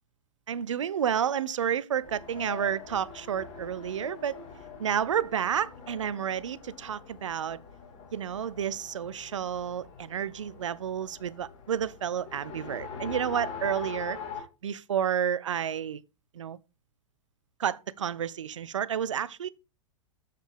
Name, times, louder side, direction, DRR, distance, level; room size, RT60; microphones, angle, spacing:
voice 1, 0.5-4.4 4.8-7.6 8.1-14.2 14.6-16.0 16.3-16.6 17.6-19.5, right 9 dB, 65° right, 0.5 m, -30 dB
Race car auto racing, 2.0-14.4, left 6 dB, 40° left, 3.0 m, -43 dB
7.5 x 7.0 x 3.4 m
figure-of-eight pair, 95°, 17 cm